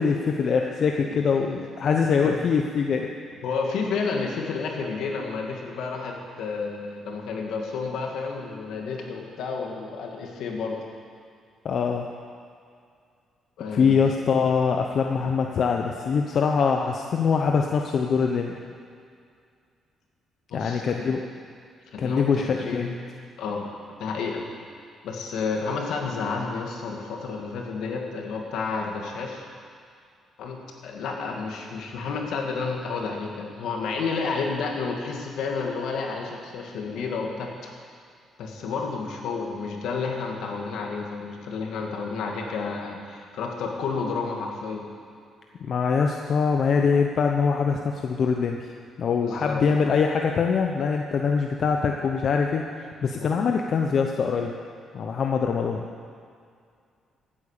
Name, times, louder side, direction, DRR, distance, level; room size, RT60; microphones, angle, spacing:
voice 1, 0.0-3.1 11.6-12.1 13.7-18.6 20.5-21.3 22.0-22.9 45.6-48.6 49.0-54.5 54.9-55.8, left 5 dB, 55° left, 2 dB, 0.9 m, -23 dB
voice 2, 3.4-10.8 13.6-14.0 20.5-21.1 21.9-23.0 23.4-23.7 24.0-24.4 25.0-29.4 30.4-37.7 38.4-44.8 49.2-49.7 53.2-53.4, left 4 dB, 80° left, 1 dB, 2.3 m, -31 dB
15.5 x 8.9 x 6.7 m, 2.3 s
cardioid pair, 90°, 0 cm